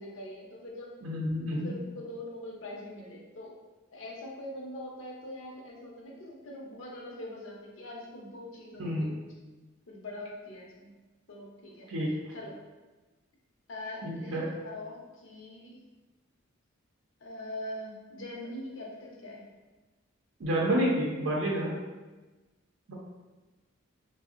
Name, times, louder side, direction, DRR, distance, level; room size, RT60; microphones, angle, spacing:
voice 1, 0.0-1.0 1.5-3.5 3.9-9.1 9.9-10.9 11.3-11.9 12.3-12.6 13.7-15.8 17.2-19.4 21.5-21.7, left 1 dB, 75° left, -1 dB, 0.6 m, -42 dB
voice 2, 1.0-1.7 8.8-9.1 11.9-12.1 14.0-14.5 20.4-21.7 22.9-23.0, equal, 85° right, -4 dB, 0.5 m, -29 dB
3.5 x 2.0 x 2.4 m, 1.2 s
head